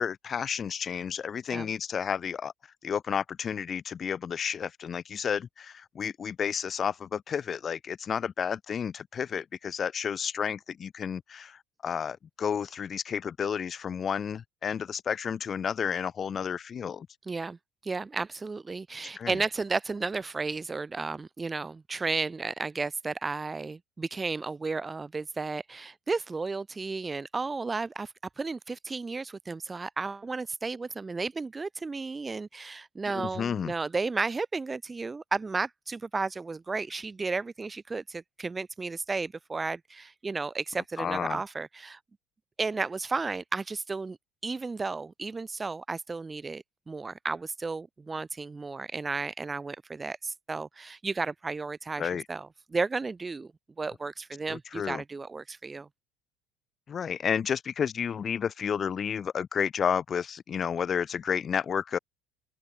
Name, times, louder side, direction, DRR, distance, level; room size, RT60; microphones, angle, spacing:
voice 1, 0.0-2.5 2.8-17.1 19.2-19.3 33.1-33.7 41.0-41.4 52.0-52.2 54.5-55.0 56.9-62.0, left 7 dB, 30° left, 0.3 m, -31 dB
voice 2, 17.2-42.0 42.6-44.2 44.4-53.5 53.8-55.9, right 4 dB, 15° right, 0.6 m, -33 dB
open air
cardioid pair, 150°, 0 cm